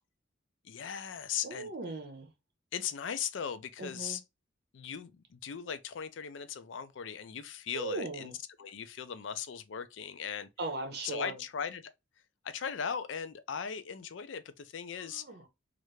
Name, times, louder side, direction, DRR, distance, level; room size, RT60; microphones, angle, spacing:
voice 1, 0.6-1.7 2.7-4.2 4.7-8.3 8.6-10.5 11.0-11.9 12.4-15.2, left 7 dB, 75° left, 0.4 m, -38 dB
voice 2, 1.4-2.3 3.8-4.2 7.7-8.4 10.6-11.4 15.0-15.5, right 2 dB, 55° right, 0.9 m, -38 dB
3.2 x 2.5 x 3.0 m
head